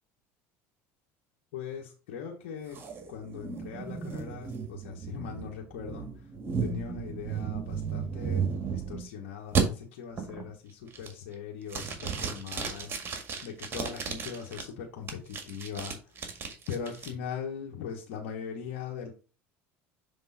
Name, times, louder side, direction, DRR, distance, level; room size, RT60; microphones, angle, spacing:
voice 1, 1.5-2.8 3.1-6.3 6.6-16.2 16.7-19.1, left 7 dB, 80° left, -1 dB, 1.3 m, -40 dB
sound 1, 2.7-9.1 9.6-9.7 10.2-10.5 10.9-11.3 11.7-14.6 15.1-17.1, right 6 dB, 35° right, 1.9 m, -34 dB
6.9 x 3.6 x 4.1 m, 0.34 s
supercardioid pair, 95°, 7 cm